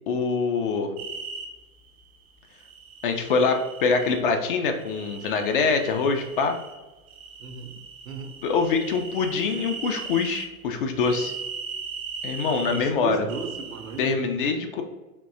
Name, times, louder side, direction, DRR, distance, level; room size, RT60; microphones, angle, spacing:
voice 1, 0.1-0.9 3.0-6.6 8.4-11.3 12.2-13.3 14.0-14.8, left 4 dB, 40° left, 5 dB, 0.4 m, -24 dB
sound 1, 1.0-1.5 2.6-4.2 4.8-6.7 7.1-10.5 11.0-12.8 13.3-14.1, right 5 dB, 30° right, 0.4 m, -38 dB
voice 2, 7.4-7.7 8.0-8.3 12.7-14.2, right 5 dB, 75° right, 5 dB, 0.7 m, -35 dB
3.6 x 2.6 x 2.6 m, 1.1 s
figure-of-eight pair, 90°, 42 cm